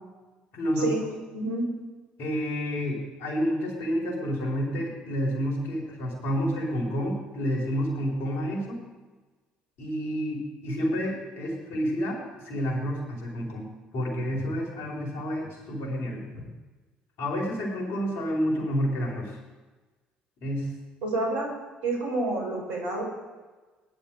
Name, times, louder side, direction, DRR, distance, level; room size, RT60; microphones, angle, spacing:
voice 1, 0.5-0.9 2.2-8.8 9.8-16.5 17.2-19.4 20.4-20.7, equal, 60° left, 0 dB, 4.8 m, -29 dB
voice 2, 1.3-1.7 21.0-21.5 21.8-23.0, right 2 dB, 75° right, -1 dB, 5.5 m, -28 dB
20.0 x 11.0 x 5.0 m, 1.3 s
figure-of-eight pair, 55°, 5 cm